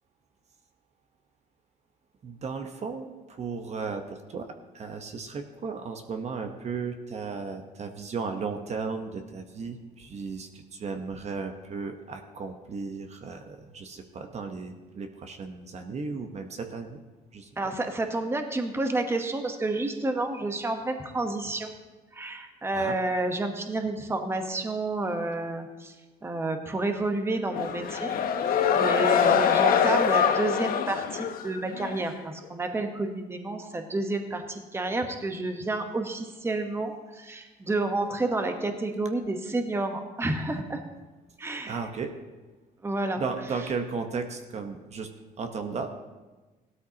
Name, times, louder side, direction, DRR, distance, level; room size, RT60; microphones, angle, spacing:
voice 1, 2.2-4.5 4.7-17.0 17.3-17.5 22.7-23.0 41.6-42.1 43.2-45.1 45.4-45.9, right 5 dB, 40° right, 6 dB, 1.0 m, -35 dB
voice 2, 17.6-21.7 22.1-25.9 26.2-28.1 28.4-40.8 41.4-41.8 42.8-43.2, right 2 dB, 15° right, 5 dB, 1.1 m, -30 dB
sound 1, 27.5-32.0, left 7 dB, 60° left, 1.0 m, -24 dB
16.5 x 12.5 x 2.9 m, 1.2 s
cardioid pair, 110°, 17 cm